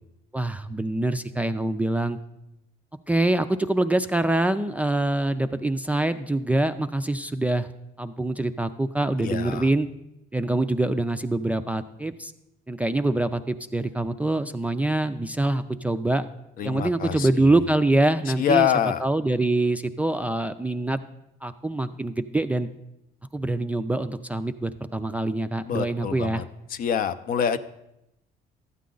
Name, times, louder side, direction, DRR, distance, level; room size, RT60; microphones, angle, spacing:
voice 1, 0.3-2.2 3.1-7.7 8.0-9.9 10.3-12.3 12.7-16.3 16.6-18.7 19.0-21.0 21.4-22.7 23.3-26.4, right 2 dB, 10° right, 9 dB, 0.3 m, -25 dB
voice 2, 9.2-9.7 16.6-17.5 18.3-19.0 25.6-26.4 26.7-27.6, left 8 dB, 55° left, 12 dB, 0.5 m, -26 dB
12.5 x 8.3 x 3.8 m, 0.87 s
cardioid pair, 110°, 17 cm